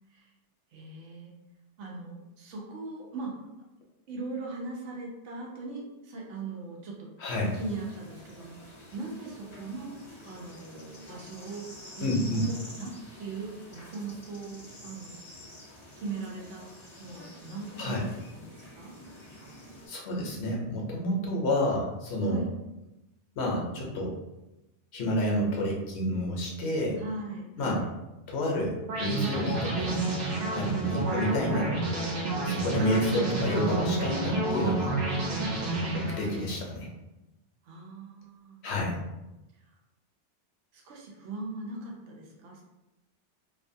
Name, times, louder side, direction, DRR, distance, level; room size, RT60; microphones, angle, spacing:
voice 1, 0.7-1.3 1.8-3.4 4.1-7.1 7.5-10.0 10.2-11.7 12.0-12.1 12.4-12.9 13.2-15.1 16.0-16.7 17.0-18.9 22.2-22.5 27.0-27.9 30.9-31.2 35.6-36.0 37.6-38.6 39.7-39.8 40.7-42.6, right 3 dB, 90° right, -1 dB, 0.9 m, -39 dB
voice 2, 7.2-7.6 12.0-12.5 17.8-18.0 19.9-22.4 23.4-24.1 24.9-27.0 27.6-27.8 28.3-30.0 30.5-31.7 32.4-34.9 35.9-36.9 38.6-39.0, left 1 dB, 70° left, -2 dB, 0.9 m, -29 dB
sound 1, 7.3-19.9, left 1 dB, 35° left, 0.5 m, -48 dB
sound 2, 28.9-36.6, right 2 dB, 50° right, 0.6 m, -29 dB
2.6 x 2.2 x 2.6 m, 0.98 s
omnidirectional pair, 1.2 m